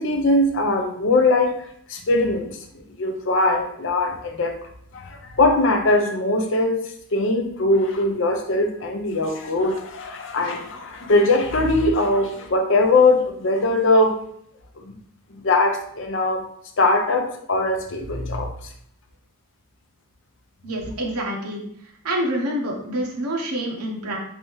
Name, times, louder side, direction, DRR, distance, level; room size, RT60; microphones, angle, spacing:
voice 1, 0.0-1.5 1.9-2.6 3.0-4.6 4.9-14.2 14.8-15.0 15.4-16.5 16.8-18.5, left 2 dB, 55° left, 3 dB, 0.6 m, -21 dB
voice 2, 20.6-21.6 22.0-24.2, right 1 dB, 90° right, 0 dB, 0.9 m, -27 dB
4.1 x 3.4 x 3.0 m, 0.69 s
head